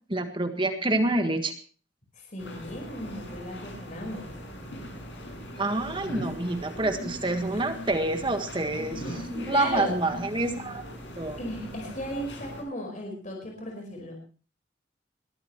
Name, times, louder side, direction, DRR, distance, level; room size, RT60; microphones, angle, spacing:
voice 1, 0.1-1.5 5.6-10.8 11.2-11.4, right 2 dB, 25° right, 7 dB, 1.7 m, -27 dB
voice 2, 2.1-4.3 5.8-5.9 7.5-7.6 8.9-9.1 9.5-9.9 11.4-14.1, left 1 dB, 40° left, 1 dB, 5.0 m, -36 dB
sound 1, 2.4-12.6, equal, 75° left, 6.6 m, -40 dB
21.0 x 14.5 x 3.2 m, 0.37 s
head